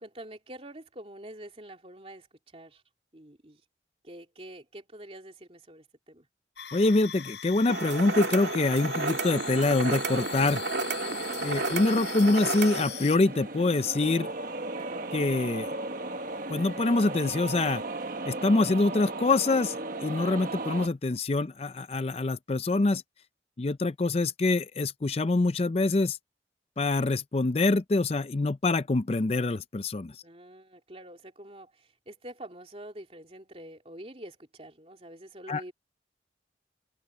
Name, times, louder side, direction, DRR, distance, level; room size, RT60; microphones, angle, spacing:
voice 1, 0.0-2.3 2.5-2.8 3.1-3.6 4.0-6.3 14.7-15.1 30.2-35.7, right 1 dB, 35° right, 3.1 m, -46 dB
sound 1, 6.6-13.2, left 11 dB, 75° left, 7.2 m, -42 dB
voice 2, 6.7-10.6 11.4-14.3 15.1-15.7 16.5-17.8 18.3-23.0 23.6-26.2 26.8-30.2 35.5-35.6, left 2 dB, 35° left, 0.5 m, -25 dB
sound 2, 7.7-12.8, right 3 dB, 75° right, 2.0 m, -32 dB
sound 3, 8.5-20.9, right 2 dB, 50° right, 1.4 m, -37 dB
open air
head